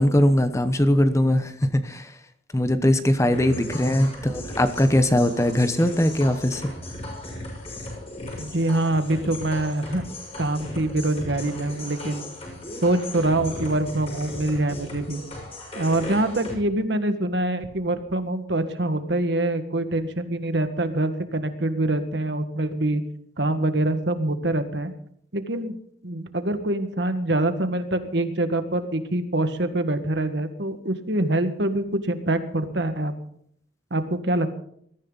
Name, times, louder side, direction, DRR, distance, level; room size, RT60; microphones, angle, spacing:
voice 1, 0.0-2.1 2.5-6.6, left 1 dB, 15° left, 9 dB, 0.9 m, -20 dB
sound 1, 3.3-16.5, left 1 dB, 30° left, 6.7 m, -37 dB
voice 2, 3.3-4.1 8.4-10.0 10.4-12.3 12.8-15.2 15.7-23.0 23.4-24.9 25.3-25.8 26.0-33.1 33.9-34.5, right 1 dB, 60° right, 9 dB, 1.7 m, -25 dB
21.0 x 14.0 x 4.0 m, 0.66 s
head